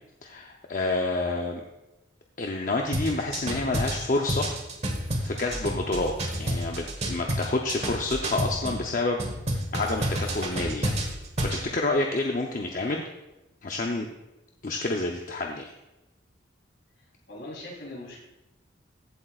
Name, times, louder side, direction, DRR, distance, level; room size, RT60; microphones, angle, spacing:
voice 1, 0.2-1.6 2.4-4.5 5.2-9.2 9.7-10.9 11.4-13.0 13.6-14.1 14.6-15.7, left 2 dB, 45° left, 1 dB, 0.7 m, -28 dB
sound 1, 2.9-8.8 9.2-11.6, right 1 dB, 35° right, 1.3 m, -29 dB
voice 2, 17.3-18.2, left 1 dB, 65° left, -3 dB, 3.6 m, -41 dB
15.5 x 7.9 x 2.4 m, 0.98 s
head